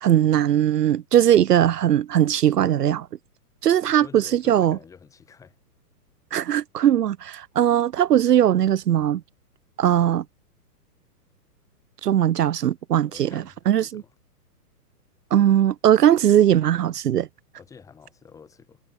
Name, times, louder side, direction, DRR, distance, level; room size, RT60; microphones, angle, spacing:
voice 1, 0.0-3.1 3.6-4.8 6.3-9.2 9.8-10.2 12.0-14.0 15.3-17.3, right 11 dB, 75° right, 1.1 m, -19 dB
voice 2, 3.8-5.6 13.1-14.1 17.5-18.8, left 6 dB, 5° left, 6.4 m, -48 dB
hypercardioid pair, 180°, 48 cm